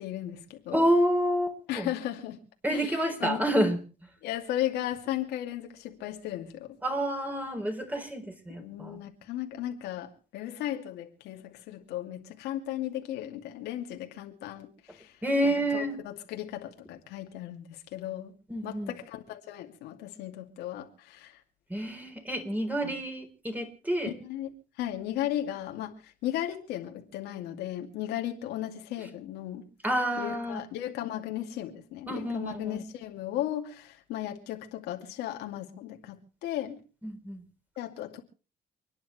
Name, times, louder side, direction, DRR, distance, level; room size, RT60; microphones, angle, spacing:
voice 1, 0.0-0.9 1.7-2.4 2.7-3.5 4.2-6.8 8.6-18.3 18.6-21.4 22.8-23.0 24.1-24.5 24.8-29.7 30.1-36.8 37.8-38.2, left 12 dB, 90° left, 2.6 m, -36 dB
voice 2, 0.7-1.9 2.6-3.8 6.8-9.0 15.2-15.9 18.5-18.9 21.7-24.1 29.8-30.6 32.1-32.8 37.0-37.4, equal, 10° right, 4.0 m, -28 dB
29.5 x 10.5 x 3.2 m
cardioid pair, 110°, 17 cm